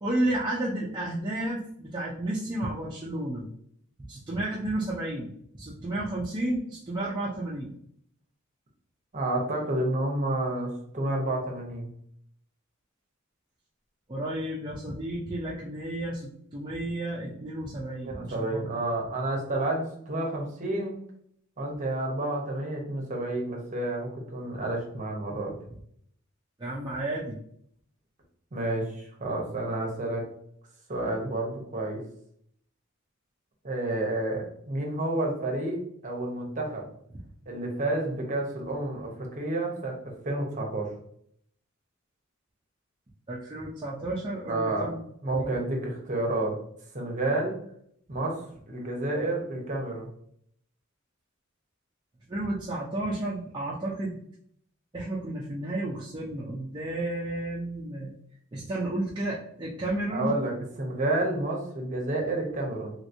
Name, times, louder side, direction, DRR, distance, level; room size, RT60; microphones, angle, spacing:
voice 1, 0.0-3.5 4.1-7.7 14.1-18.7 26.6-27.4 43.3-45.0 45.3-45.6 52.3-54.2 54.9-58.1 58.5-60.4, right 1 dB, 20° right, -6 dB, 0.5 m, -32 dB
voice 2, 9.1-11.9 18.0-21.0 21.6-25.5 28.5-28.9 29.2-30.3 30.9-32.0 33.6-36.8 37.5-40.0 40.2-40.9 44.5-44.9 45.2-46.6 46.9-47.6 48.1-50.1 60.1-62.9, right 2 dB, 40° right, 0 dB, 0.9 m, -30 dB
3.2 x 3.0 x 2.6 m, 0.66 s
head